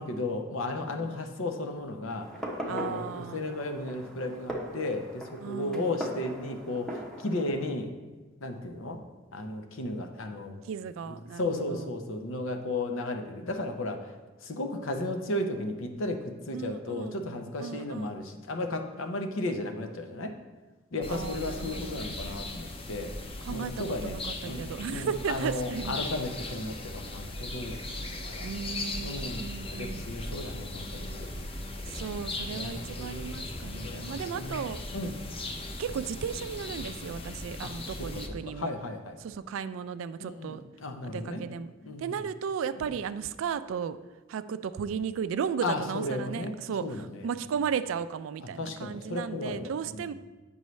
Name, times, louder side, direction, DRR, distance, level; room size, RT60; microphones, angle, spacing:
voice 1, 0.0-2.3 2.6-7.9 8.4-9.0 9.3-10.6 11.1-14.1 14.4-20.3 20.9-23.1 23.5-24.2 24.4-28.5 29.0-31.2 32.5-33.4 33.7-34.6 34.9-35.2 37.6-39.2 40.2-41.4 41.8-42.2 42.8-42.9 45.6-47.5 48.5-50.1, left 2 dB, 80° left, 5 dB, 0.7 m, -34 dB
Fireworks, 2.2-7.5, equal, 5° left, 0.8 m, -40 dB
voice 2, 2.7-3.4 5.4-5.9 10.6-11.9 16.5-17.1 17.6-18.1 21.1-22.0 23.4-26.1 28.4-30.1 31.9-34.8 35.8-38.8 39.2-40.6 41.1-41.7 42.0-44.0 44.3-50.1, right 7 dB, 75° right, 14 dB, 0.3 m, -35 dB
sound 1, 21.0-38.3, left 2 dB, 30° left, 0.5 m, -38 dB
8.0 x 5.4 x 3.1 m, 1.2 s
head